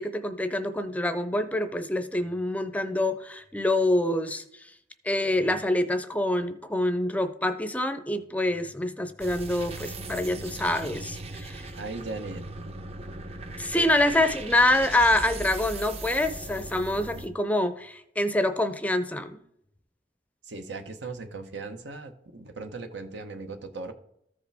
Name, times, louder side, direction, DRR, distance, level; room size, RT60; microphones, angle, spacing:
voice 1, 0.0-4.7 5.0-11.7 13.6-19.4, left 1 dB, 10° left, 9 dB, 0.5 m, -26 dB
sound 1, 9.2-17.3, right 2 dB, 35° right, 0.7 m, -39 dB
voice 2, 11.8-12.5 14.1-14.3 20.4-23.9, right 3 dB, 85° right, 7 dB, 1.0 m, -38 dB
14.0 x 5.0 x 3.4 m, 0.74 s
head